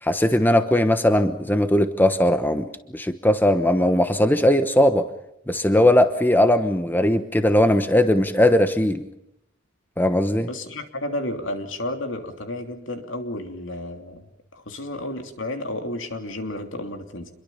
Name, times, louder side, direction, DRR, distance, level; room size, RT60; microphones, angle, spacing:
voice 1, 0.0-5.0 5.5-9.0 10.0-10.5, left 1 dB, 10° left, 9 dB, 1.1 m, -19 dB
voice 2, 10.5-14.3 14.5-17.3, left 1 dB, 70° left, 5 dB, 3.1 m, -32 dB
27.5 x 22.5 x 5.6 m, 0.80 s
head